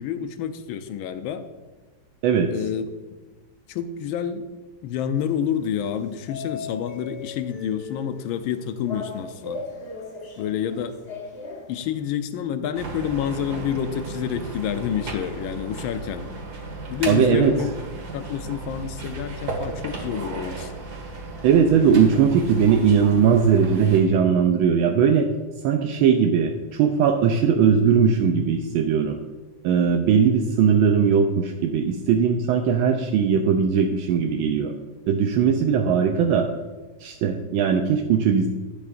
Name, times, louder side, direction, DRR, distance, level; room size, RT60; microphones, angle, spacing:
voice 1, 0.0-1.4 2.5-2.9 3.7-4.4 4.8-9.6 10.4-11.0 11.7-16.3 16.9-17.7 18.1-20.7, left 9 dB, 80° left, 10 dB, 1.4 m, -28 dB
sound 1, 5.2-12.2, left 4 dB, 45° left, 0.8 m, -39 dB
sound 2, 12.7-24.0, right 3 dB, 50° right, 2.0 m, -35 dB
voice 2, 17.1-17.5 21.4-25.3 25.6-29.2 29.6-34.7 35.1-36.5 37.0-38.5, right 7 dB, 80° right, 4 dB, 1.4 m, -19 dB
11.5 x 8.5 x 2.5 m, 1.2 s
omnidirectional pair, 2.3 m